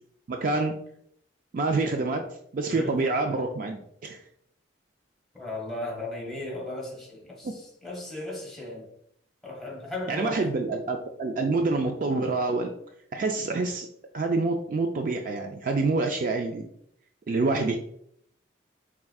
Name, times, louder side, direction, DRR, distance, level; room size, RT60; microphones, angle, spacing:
voice 1, 0.3-0.7 1.5-2.3 2.5-4.2 10.1-12.7 13.1-13.9 14.1-16.7 17.3-17.8, right 3 dB, 45° right, 0.3 m, -27 dB
voice 2, 2.7-3.0 5.3-8.9 9.4-10.5, left 2 dB, ahead, 1.1 m, -36 dB
4.5 x 3.5 x 2.3 m
head